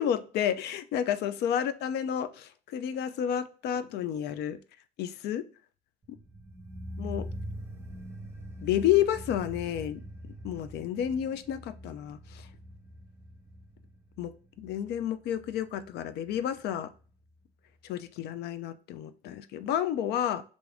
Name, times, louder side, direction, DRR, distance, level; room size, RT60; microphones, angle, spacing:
voice 1, 0.0-4.6 5.0-5.4 7.0-7.3 8.6-10.0 10.4-12.5 14.2-14.3 14.6-16.9 17.8-20.4, left 10 dB, 75° left, 12 dB, 0.4 m, -30 dB
sound 1, 6.0-17.1 17.3-17.4, equal, 15° right, 0.7 m, -43 dB
3.5 x 2.6 x 3.4 m, 0.39 s
cardioid pair, 110°, 17 cm